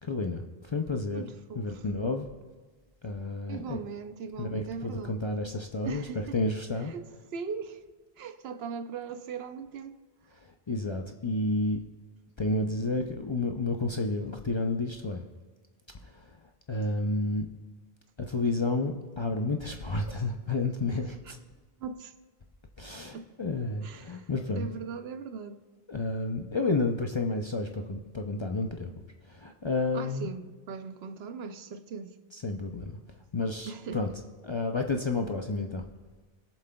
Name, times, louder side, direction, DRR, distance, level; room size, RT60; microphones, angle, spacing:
voice 1, 0.0-2.3 3.0-3.8 4.4-6.0 6.3-6.9 10.7-11.8 12.4-15.2 16.0-16.2 16.7-17.5 18.2-21.4 22.8-24.7 25.9-28.9 29.3-30.3 32.3-32.9 33.3-34.1 34.4-35.8, left 2 dB, 40° left, 0.4 m, -31 dB
voice 2, 1.1-1.9 3.5-5.2 5.8-6.3 6.8-7.8 8.2-10.0 21.8-22.1 23.1-23.3 23.8-24.3 24.5-25.6 29.9-32.2 33.7-34.1, right 5 dB, 75° right, 0.9 m, -39 dB
22.0 x 7.4 x 2.3 m
omnidirectional pair, 1.1 m